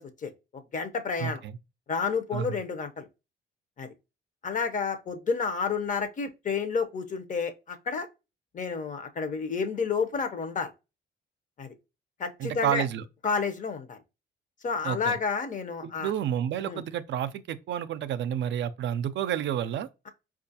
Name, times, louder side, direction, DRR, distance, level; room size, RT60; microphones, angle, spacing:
voice 1, 0.0-1.4 1.9-3.1 3.8-3.9 4.4-8.1 8.5-10.7 11.6-11.7 12.2-12.8 13.2-14.0 14.6-16.1 16.7-16.8, left 5 dB, 40° left, 0.6 m, -30 dB
voice 2, 1.2-1.6 2.3-2.6 12.4-13.0 14.8-15.2 15.8-19.9, right 10 dB, 65° right, 0.4 m, -30 dB
4.4 x 2.4 x 2.7 m
cardioid pair, 90°, 20 cm